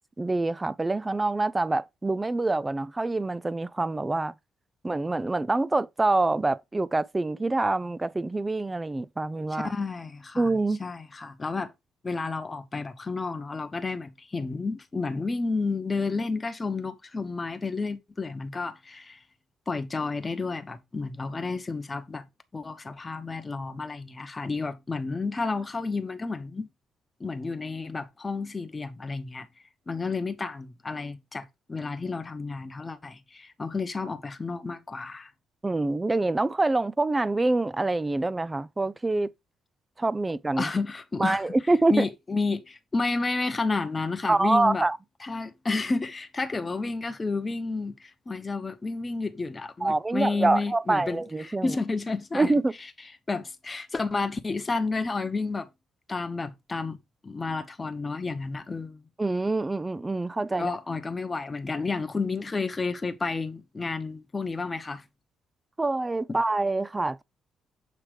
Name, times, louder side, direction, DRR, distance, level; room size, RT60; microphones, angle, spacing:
voice 1, 0.2-4.3 4.8-9.7 10.4-10.8 35.6-39.3 40.0-40.7 41.2-42.1 44.3-45.0 49.8-51.8 52.3-52.7 59.2-60.7 65.8-67.2, right 2 dB, 20° right, 0.4 m, -26 dB
voice 2, 9.5-11.7 12.0-19.2 19.7-22.3 22.5-26.7 27.2-29.5 29.9-35.3 40.6-41.5 41.9-44.8 45.2-52.5 53.3-55.7 56.1-57.0 57.2-59.0 60.6-65.0, left 3 dB, 25° left, 1.0 m, -31 dB
7.5 x 3.0 x 4.9 m
cardioid pair, 90°, 0 cm